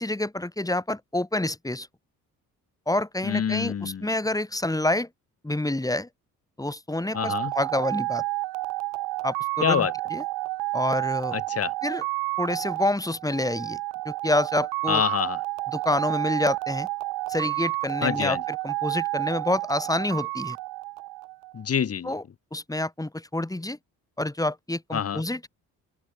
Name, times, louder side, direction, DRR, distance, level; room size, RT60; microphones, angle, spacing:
voice 1, 0.0-1.9 2.9-5.1 5.4-6.1 6.6-8.2 9.2-10.2 10.7-11.4 11.8-12.0 12.4-13.8 14.0-15.0 15.7-16.9 17.3-20.6 22.0-22.2 22.5-23.8 24.2-25.5, left 1 dB, 10° left, 1.6 m, -27 dB
voice 2, 3.2-4.1 7.1-7.5 9.6-9.9 11.3-11.7 14.9-15.4 18.0-18.4 21.5-22.2 24.9-25.2, left 8 dB, 35° left, 1.1 m, -26 dB
sound 1, 7.1-21.6, right 20 dB, 70° right, 0.7 m, -30 dB
open air
hypercardioid pair, 55°, 40 cm